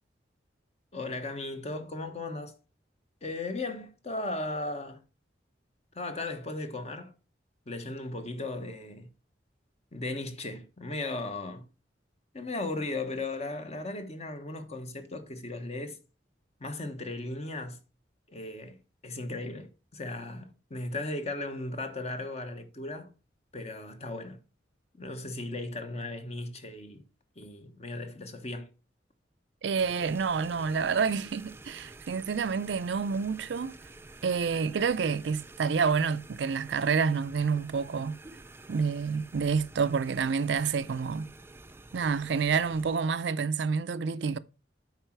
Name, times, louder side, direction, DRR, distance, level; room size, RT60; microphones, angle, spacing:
voice 1, 0.9-2.6 3.2-5.0 5.9-7.1 7.7-9.1 9.9-11.7 12.3-16.0 16.6-17.8 18.3-23.1 23.5-24.4 25.0-27.0 27.4-28.7, left 2 dB, 40° left, 1.1 m, -36 dB
voice 2, 29.6-33.7 34.2-38.2 38.7-41.3 41.9-44.4, right 5 dB, 70° right, 0.4 m, -28 dB
sound 1, 29.8-43.1, right 2 dB, 15° right, 0.4 m, -50 dB
7.9 x 4.9 x 4.5 m
head